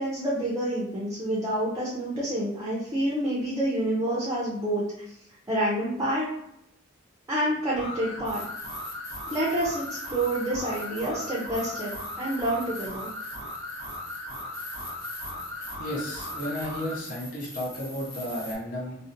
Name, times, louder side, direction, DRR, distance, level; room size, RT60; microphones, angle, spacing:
voice 1, 0.0-4.8 5.5-6.3 7.3-8.4 9.3-13.1, right 1 dB, 15° right, -6 dB, 0.5 m, -28 dB
sound 1, 7.7-17.0, left 1 dB, 90° left, 1.0 m, -38 dB
sound 2, 8.2-18.6, left 1 dB, 20° left, 1.0 m, -44 dB
voice 2, 15.8-19.0, equal, 45° left, -4 dB, 0.6 m, -33 dB
2.7 x 2.1 x 2.4 m, 0.78 s
head